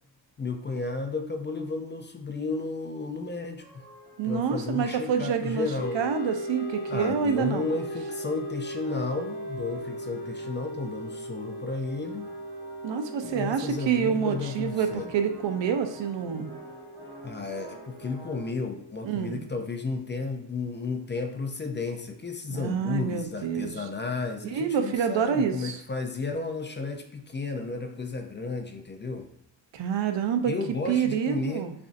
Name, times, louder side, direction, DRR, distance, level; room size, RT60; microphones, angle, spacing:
voice 1, 0.4-3.8 4.2-6.0 6.9-12.3 13.3-15.1 17.2-29.3 30.5-31.7, left 4 dB, 30° left, 5 dB, 0.4 m, -33 dB
concert-church-hallway, 3.6-18.5, right 1 dB, 30° right, 1.2 m, -48 dB
voice 2, 4.2-5.7 5.9-7.7 12.8-16.5 19.0-19.4 22.5-23.7 24.4-25.8 29.7-30.5 30.9-31.7, right 7 dB, 85° right, 7 dB, 0.6 m, -27 dB
sound 1, 5.8-19.7, equal, 85° left, 0.7 m, -39 dB
6.8 x 2.5 x 2.5 m, 0.71 s
wide cardioid pair, 145°, 43 cm